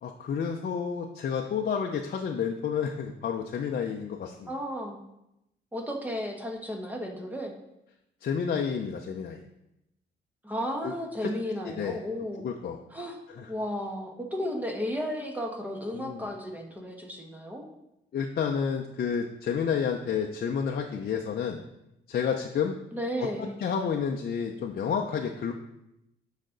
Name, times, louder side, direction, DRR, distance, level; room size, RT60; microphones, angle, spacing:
voice 1, 0.0-4.5 8.2-9.4 10.8-10.9 11.2-11.3 11.6-12.0 12.4-12.8 13.4-13.5 15.9-16.2 18.1-21.6 22.1-22.7 23.2-25.5, left 7 dB, 50° left, 2 dB, 0.7 m, -30 dB
voice 2, 4.5-5.0 5.7-7.5 10.4-12.4 12.9-13.2 13.5-17.7 22.9-23.5, equal, 10° right, 2 dB, 1.3 m, -33 dB
8.7 x 5.2 x 3.9 m, 0.87 s
cardioid pair, 90°, 20 cm